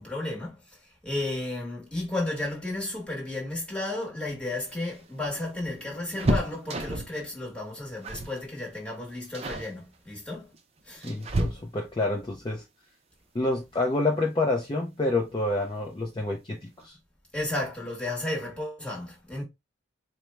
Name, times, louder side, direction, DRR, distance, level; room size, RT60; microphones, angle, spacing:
voice 1, 0.0-10.5 10.8-11.1 17.3-19.4, left 2 dB, 5° left, 1.1 m, -33 dB
sound 1, 4.5-7.2 8.0-8.4 8.7-8.9 9.3-9.7 10.5-12.0 13.8-13.9 14.2-14.3 15.5-15.9 16.3-16.4 16.7-16.9, right 1 dB, 30° right, 0.5 m, -31 dB
voice 2, 11.0-12.6 13.3-17.0, left 2 dB, 25° left, 0.5 m, -28 dB
4.3 x 2.1 x 3.3 m
head